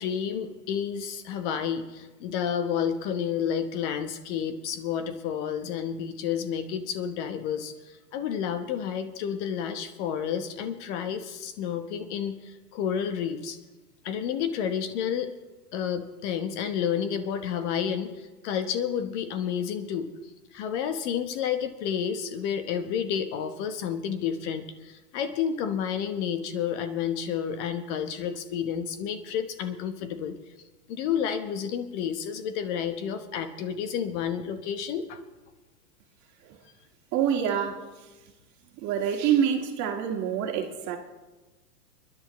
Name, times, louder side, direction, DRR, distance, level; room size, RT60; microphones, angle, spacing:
voice 1, 0.0-7.7 8.1-13.6 14.0-15.3 15.7-20.1 20.5-30.4 30.9-35.2, left 8 dB, 45° left, 9 dB, 1.2 m, -30 dB
voice 2, 37.1-37.9 38.8-41.0, right 8 dB, 35° right, 3 dB, 1.9 m, -26 dB
27.0 x 10.5 x 3.1 m, 1.2 s
hypercardioid pair, 120°, 48 cm